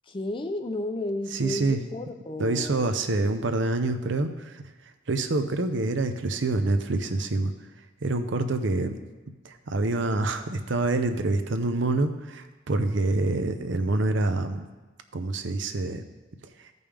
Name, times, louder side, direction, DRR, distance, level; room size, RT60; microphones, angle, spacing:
voice 1, 0.1-2.9, left 1 dB, 25° left, 7 dB, 0.5 m, -33 dB
voice 2, 1.3-1.8 2.4-4.6 5.1-7.5 8.0-9.0 9.4-14.7 15.1-16.0, right 2 dB, 65° right, 8 dB, 0.6 m, -26 dB
14.0 x 5.3 x 3.4 m, 1.2 s
head